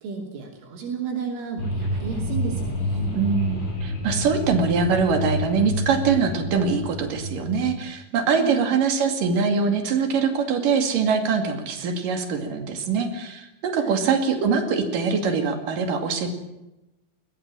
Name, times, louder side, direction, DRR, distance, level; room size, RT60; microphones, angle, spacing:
voice 1, 0.0-3.1 8.4-8.6 13.8-14.0, right 6 dB, 75° right, 1 dB, 5.4 m, -32 dB
gritty dark pad, 1.6-7.8, equal, 85° left, 8.4 m, -29 dB
voice 2, 3.1-16.3, right 5 dB, 50° right, 5 dB, 3.5 m, -23 dB
21.0 x 18.0 x 7.6 m, 0.95 s
omnidirectional pair, 5.6 m